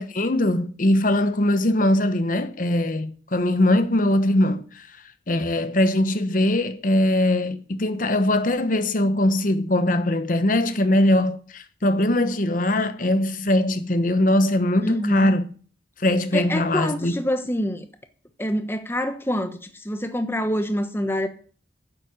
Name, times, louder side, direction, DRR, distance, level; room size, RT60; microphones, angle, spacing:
voice 1, 0.0-5.0 5.3-15.5 16.0-17.2, left 1 dB, 45° left, 1.0 m, -21 dB
voice 2, 14.8-15.4 16.3-17.9 18.4-21.3, equal, 15° left, 1.1 m, -26 dB
9.7 x 7.6 x 9.0 m
head